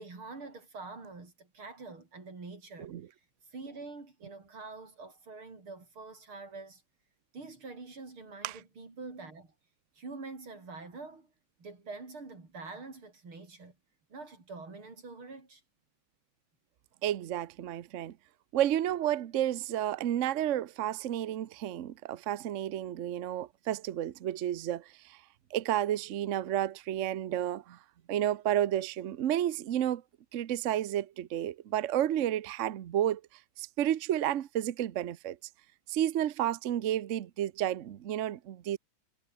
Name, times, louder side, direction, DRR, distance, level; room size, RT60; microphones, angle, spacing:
voice 1, 0.0-2.9 3.5-6.8 7.3-9.5 10.0-11.3 11.6-13.8 14.1-15.6, right 3 dB, 85° right, 6.1 m, -45 dB
voice 2, 17.0-18.2 18.5-25.2 25.5-27.8 28.1-30.0 30.3-33.2 33.6-35.4 35.9-38.8, right 11 dB, 60° right, 0.8 m, -31 dB
omnidirectional pair, 2.3 m